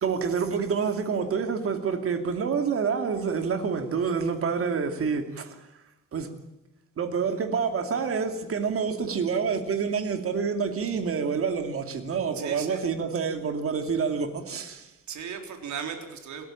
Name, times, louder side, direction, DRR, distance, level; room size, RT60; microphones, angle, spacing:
voice 1, 0.0-5.6 6.1-6.3 7.0-14.9, right 6 dB, 45° right, 2.7 m, -27 dB
voice 2, 12.3-12.9 15.1-16.4, right 7 dB, 60° right, 3.8 m, -36 dB
28.0 x 14.5 x 8.7 m
cardioid pair, 180°, 32 cm